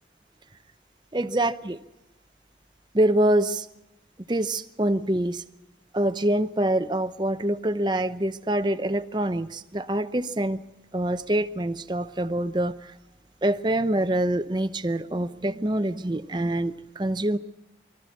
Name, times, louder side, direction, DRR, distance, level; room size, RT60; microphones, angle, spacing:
voice 1, 1.1-1.8 2.9-3.6 4.3-5.4 5.9-10.6 10.9-12.7 13.4-17.4, right 1 dB, 25° right, 11 dB, 0.7 m, -25 dB
24.5 x 14.0 x 8.2 m, 0.94 s
head